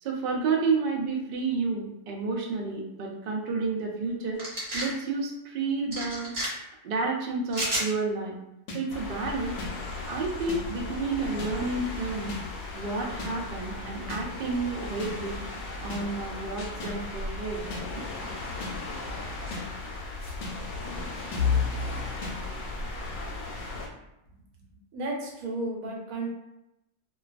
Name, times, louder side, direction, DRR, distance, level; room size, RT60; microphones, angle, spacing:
voice 1, 0.0-4.4 4.7-6.3 6.8-8.4 8.7-9.6 10.0-12.4 12.7-15.4 15.8-17.6, right 4 dB, 70° right, 0 dB, 0.5 m, -30 dB
sound 1, 4.4-4.9 5.9-6.5 7.5-7.9, right 1 dB, 40° right, 0.8 m, -30 dB
sound 2, 8.7-8.8 9.6-9.7 10.5-10.6 11.4-11.5 12.3-12.4 13.2-13.3 14.1-14.2 15.0-15.1 15.9-16.0 16.8-16.9 17.7-17.8 18.6-18.7 19.5-19.6 20.4-20.5 21.3-21.4 22.2-22.3, left 2 dB, 65° left, 0.8 m, -37 dB
sound 3, 8.9-23.9, left 4 dB, 90° left, 1.0 m, -35 dB
voice 2, 24.7-26.3, right 2 dB, 85° right, -1 dB, 1.1 m, -33 dB
2.3 x 2.3 x 2.4 m, 0.90 s
omnidirectional pair, 1.4 m